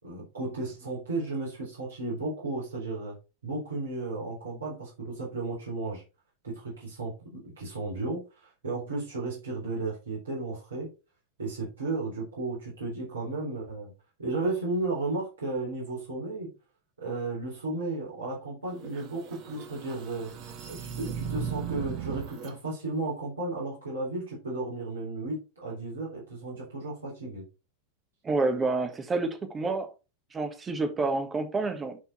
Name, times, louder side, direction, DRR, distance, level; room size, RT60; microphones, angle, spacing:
voice 1, 0.0-3.1 3.4-6.0 6.4-10.9 11.4-13.9 14.2-16.5 17.0-20.3 20.7-27.5, right 2 dB, 70° right, 4.1 m, -34 dB
sound 1, 18.8-22.5, right 8 dB, 40° right, 1.6 m, -37 dB
voice 2, 28.2-29.9 30.3-32.0, right 3 dB, 15° right, 1.6 m, -28 dB
10.5 x 4.6 x 4.3 m
figure-of-eight pair, 90°, 0 cm